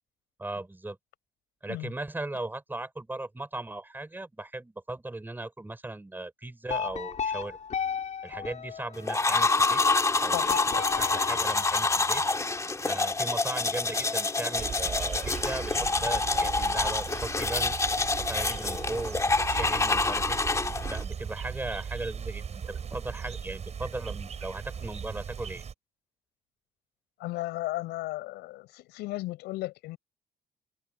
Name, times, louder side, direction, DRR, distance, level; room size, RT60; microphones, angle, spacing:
voice 1, 0.4-1.0 1.6-7.6 8.2-9.8 10.2-12.2 12.8-15.7 16.0-17.8 18.3-20.4 20.9-25.6, right 2 dB, 10° right, 6.0 m, -37 dB
sound 1, 6.7-9.4 10.5-12.2, left 7 dB, 45° left, 4.4 m, -35 dB
sound 2, 9.1-21.0, left 3 dB, 20° left, 2.5 m, -27 dB
voice 2, 10.3-10.6 27.2-30.0, left 18 dB, 90° left, 5.0 m, -35 dB
sound 3, 14.5-25.7, right 7 dB, 40° right, 7.8 m, -38 dB
cardioid pair, 110°, 17 cm